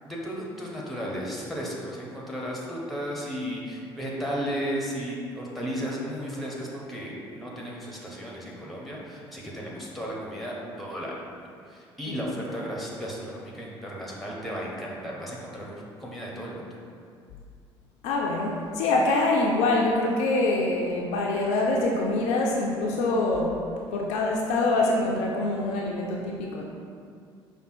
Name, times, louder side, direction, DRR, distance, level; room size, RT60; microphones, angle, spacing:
voice 1, 0.0-11.1 11.7-16.7, equal, ahead, -4 dB, 1.1 m, -34 dB
voice 2, 18.0-23.6 23.9-26.6, left 2 dB, 55° left, -1 dB, 0.5 m, -25 dB
5.3 x 2.3 x 4.3 m, 2.3 s
figure-of-eight pair, 55°, 13 cm